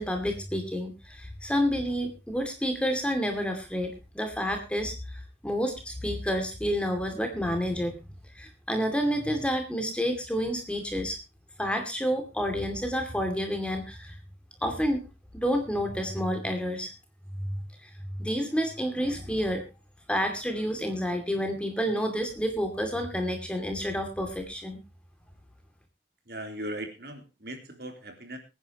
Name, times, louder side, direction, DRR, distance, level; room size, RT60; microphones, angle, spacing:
voice 1, 0.0-7.9 8.3-11.2 11.6-14.1 14.6-15.0 15.3-16.9 17.3-19.6 20.1-24.8, equal, 5° left, 5 dB, 2.5 m, -29 dB
voice 2, 26.3-28.4, right 1 dB, 60° right, 5 dB, 3.4 m, -38 dB
23.0 x 9.9 x 3.0 m, 0.27 s
head